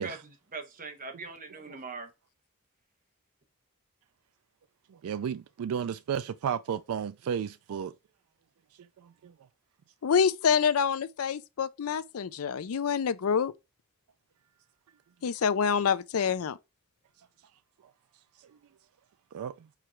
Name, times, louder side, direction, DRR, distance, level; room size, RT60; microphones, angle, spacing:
voice 1, 0.0-2.1, right 4 dB, 40° right, 1.0 m, -41 dB
voice 2, 5.0-7.9 9.2-9.3 19.3-19.5, right 8 dB, 75° right, 0.3 m, -33 dB
voice 3, 10.0-13.5 15.2-16.6, left 6 dB, 70° left, 0.5 m, -26 dB
4.8 x 4.8 x 4.4 m
head